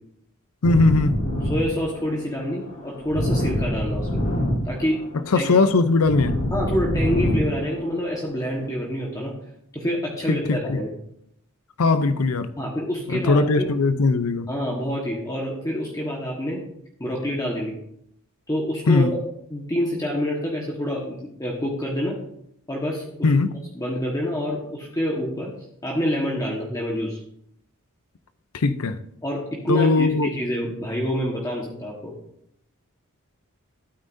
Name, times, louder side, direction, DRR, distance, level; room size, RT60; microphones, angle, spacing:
voice 1, 0.6-1.2 5.3-6.4 10.3-10.8 11.8-12.5 13.1-14.5 18.9-19.1 23.2-23.5 28.5-29.0 29.7-30.3, left 3 dB, 85° left, 0.6 m, -19 dB
sound 1, 0.6-8.7, equal, 60° left, 3.4 m, -26 dB
voice 2, 1.5-4.2 4.6-5.0 5.3-5.5 6.5-9.3 9.7-10.9 12.6-13.7 14.5-16.6 17.0-17.8 18.5-19.0 19.5-22.1 22.7-23.3 23.7-25.5 25.8-27.2 29.2-32.1, equal, 15° left, 1.4 m, -27 dB
12.5 x 9.1 x 2.7 m
head